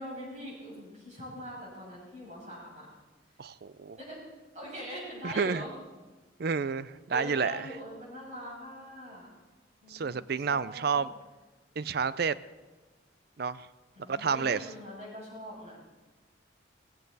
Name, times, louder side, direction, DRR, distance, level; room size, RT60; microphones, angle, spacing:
voice 1, 0.0-2.8 4.0-4.2 4.5-5.7 7.1-9.3 9.8-11.0 13.9-15.8, equal, 40° right, 6.7 m, -43 dB
voice 2, 3.4-4.0 5.2-5.6 6.4-7.7 9.9-11.1 11.8-12.4 13.4-13.7 14.1-14.7, right 5 dB, 55° right, 0.5 m, -30 dB
18.0 x 16.0 x 4.1 m
head